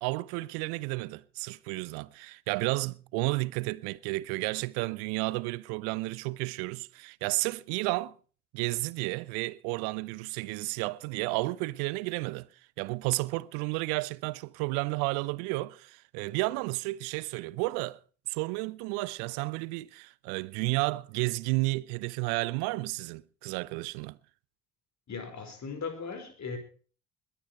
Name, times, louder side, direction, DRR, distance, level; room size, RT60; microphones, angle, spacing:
voice 1, 0.0-8.2 8.5-12.5 12.8-18.0 18.3-24.2, right 23 dB, 60° right, 0.7 m, -32 dB
voice 2, 25.1-26.6, left 5 dB, 40° left, 4.7 m, -38 dB
21.0 x 9.9 x 4.5 m
figure-of-eight pair, 50°, 43 cm